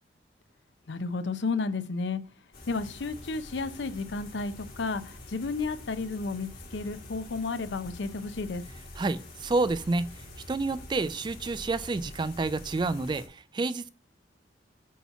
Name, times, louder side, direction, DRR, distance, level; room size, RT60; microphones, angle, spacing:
voice 1, 0.9-2.2 2.7-8.6, left 4 dB, 70° left, 0.6 m, -32 dB
sound 1, 2.5-13.3, left 1 dB, 55° left, 1.9 m, -46 dB
voice 2, 9.0-10.1 10.5-13.9, right 3 dB, 25° right, 0.3 m, -29 dB
8.3 x 2.9 x 5.6 m
head